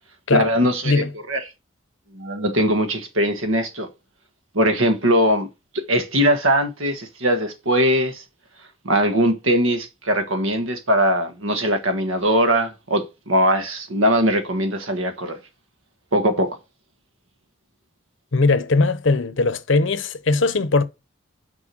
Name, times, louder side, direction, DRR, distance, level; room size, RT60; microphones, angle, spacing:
voice 1, 0.3-1.4 2.1-3.9 4.5-5.5 5.7-8.2 8.8-15.4 16.1-16.6, equal, 80° right, 1.5 m, -20 dB
voice 2, 18.3-20.8, left 3 dB, 65° left, 0.8 m, -19 dB
6.2 x 4.7 x 6.1 m
head